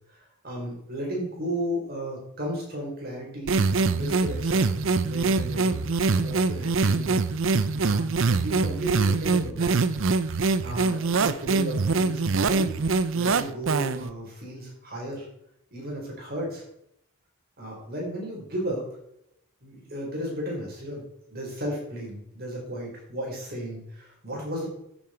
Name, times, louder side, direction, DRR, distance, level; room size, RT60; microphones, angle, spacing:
voice 1, 0.4-5.8 6.1-7.2 7.8-9.9 10.2-12.7 13.1-15.2 15.7-16.6 17.6-18.9 19.6-21.0 21.3-24.7, right 1 dB, 45° right, -2 dB, 4.5 m, -34 dB
sound 1, 3.5-14.1, right 4 dB, 65° right, 0.6 m, -24 dB
13.5 x 7.2 x 4.4 m, 0.74 s
head